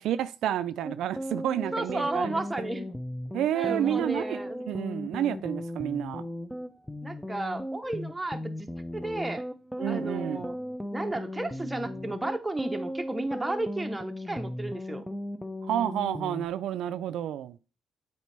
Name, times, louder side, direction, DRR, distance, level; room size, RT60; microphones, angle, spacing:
voice 1, 0.0-2.4 3.3-4.4 4.7-6.3 9.8-10.5 15.6-17.6, right 11 dB, 80° right, 0.3 m, -30 dB
sound 1, 0.8-16.5, equal, 5° left, 0.5 m, -36 dB
voice 2, 1.7-2.9 3.5-4.7 7.0-9.4 9.9-10.6 10.9-15.0, right 2 dB, 10° right, 0.9 m, -33 dB
8.2 x 4.3 x 3.3 m
cardioid pair, 90°, 0 cm